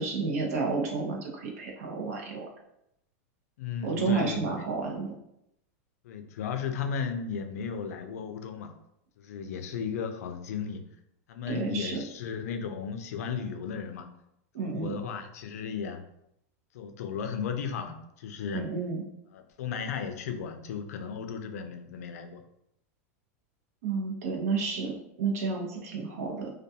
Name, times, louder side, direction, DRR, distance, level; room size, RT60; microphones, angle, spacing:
voice 1, 0.0-2.5 3.8-5.2 11.5-12.0 14.5-15.0 18.5-19.0 23.8-26.5, right 4 dB, 80° right, 0 dB, 0.7 m, -31 dB
voice 2, 3.6-4.6 6.0-8.7 9.2-10.8 11.3-14.1 14.6-16.0 16.7-18.7 19.3-22.4, left 6 dB, 85° left, 7 dB, 0.4 m, -35 dB
2.3 x 2.2 x 2.7 m, 0.78 s
supercardioid pair, 150°, 8 cm